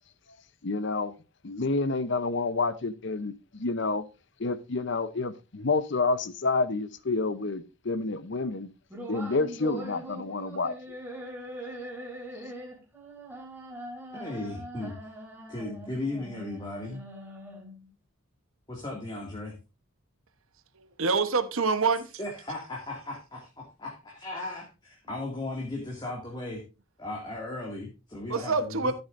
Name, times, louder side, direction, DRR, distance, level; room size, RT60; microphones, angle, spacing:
voice 1, 0.6-1.1 1.4-4.0 4.4-8.7 9.1-10.7, left 3 dB, 55° left, 0.7 m, -29 dB
sound 1, 8.9-17.9, equal, 10° right, 3.2 m, -42 dB
voice 2, 14.1-15.1 15.5-17.0 18.7-19.5 22.2-26.6 27.0-28.9, left 2 dB, 20° left, 2.2 m, -36 dB
voice 3, 20.8-22.1 28.3-28.9, right 4 dB, 70° right, 1.0 m, -26 dB
14.5 x 7.9 x 2.6 m
head